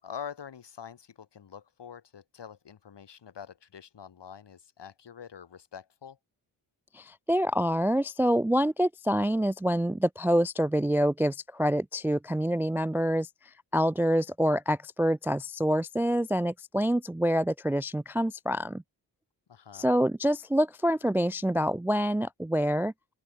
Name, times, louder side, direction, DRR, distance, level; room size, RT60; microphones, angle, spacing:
voice 1, 0.0-6.2 19.5-19.9, left 7 dB, 70° left, 6.1 m, -45 dB
voice 2, 6.9-13.3 13.7-18.8 19.7-22.9, equal, 5° right, 0.3 m, -26 dB
open air
cardioid pair, 65°, 43 cm